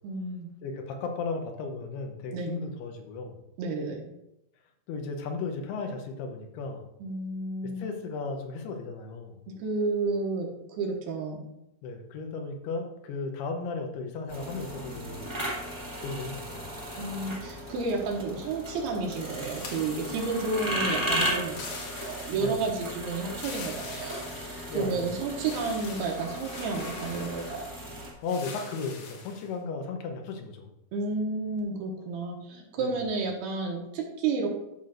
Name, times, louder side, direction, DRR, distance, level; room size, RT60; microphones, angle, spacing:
voice 1, 0.0-0.5 2.3-2.5 3.6-4.0 7.0-7.9 9.6-11.4 17.0-21.7 22.0-27.7 30.9-34.5, right 3 dB, 75° right, 0 dB, 3.1 m, -31 dB
voice 2, 0.6-3.4 4.9-6.8 7.8-9.4 11.8-15.4 16.0-16.7 22.3-22.6 24.7-25.1 28.2-30.7 32.8-33.0, left 4 dB, 85° left, 4 dB, 2.9 m, -35 dB
sound 1, 14.3-28.1, equal, 15° right, 0.9 m, -36 dB
sound 2, 19.2-20.7 21.4-22.7 23.3-25.0 25.4-27.8 28.2-29.5, left 4 dB, 60° left, 2.1 m, -44 dB
13.0 x 5.9 x 2.5 m, 0.87 s
omnidirectional pair, 4.5 m